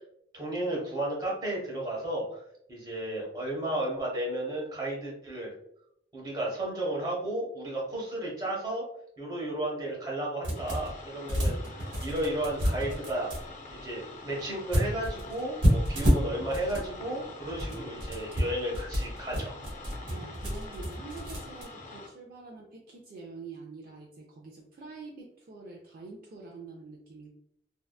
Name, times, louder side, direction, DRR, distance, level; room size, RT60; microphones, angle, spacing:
voice 1, 0.3-2.4 2.7-5.5 6.1-8.8 9.2-13.3 13.8-19.5, right 1 dB, 20° right, -4 dB, 0.9 m, -33 dB
sound 1, 10.4-11.0 11.3-13.4 14.7-16.9 17.4-21.6, equal, 80° right, 1.0 m, -29 dB
sound 2, 10.5-22.1, left 2 dB, 40° left, 0.4 m, -46 dB
voice 2, 20.1-27.3, right 3 dB, 50° right, -2 dB, 0.3 m, -46 dB
2.6 x 2.2 x 2.3 m, 0.72 s
head